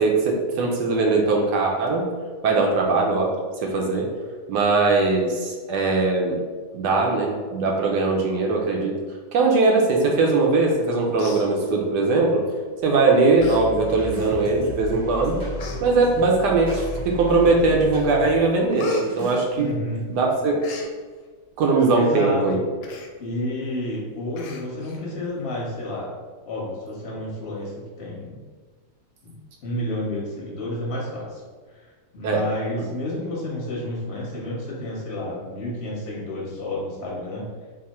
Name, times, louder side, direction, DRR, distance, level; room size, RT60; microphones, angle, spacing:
voice 1, 0.0-2.0 2.4-3.3 3.6-4.1 4.5-6.4 6.7-8.9 9.3-12.4 12.8-15.4 15.8-19.7 20.1-20.5 21.6-22.6 32.2-32.4, right 3 dB, 75° right, 0 dB, 1.2 m, -20 dB
Human voice, 10.7-10.9 11.1-12.1 12.8-13.0 13.4-13.6 14.0-14.1 14.9-15.0 15.6-15.8 16.7-17.2 17.7-18.1 18.3-20.0 20.3-20.9 22.8-23.1 23.5-23.6 23.9-24.0 24.4-25.0 25.4-25.5, left 1 dB, 90° left, 1.2 m, -36 dB
sound 1, 13.4-18.4 18.9-19.4, equal, 20° right, 0.5 m, -34 dB
voice 2, 19.5-20.0 21.9-22.6 23.2-26.1 26.4-27.7 28.0-28.4 29.2-29.3 29.6-31.4 32.1-37.5, left 1 dB, 45° left, -4 dB, 1.1 m, -30 dB
3.6 x 2.1 x 4.1 m, 1.4 s
omnidirectional pair, 1.9 m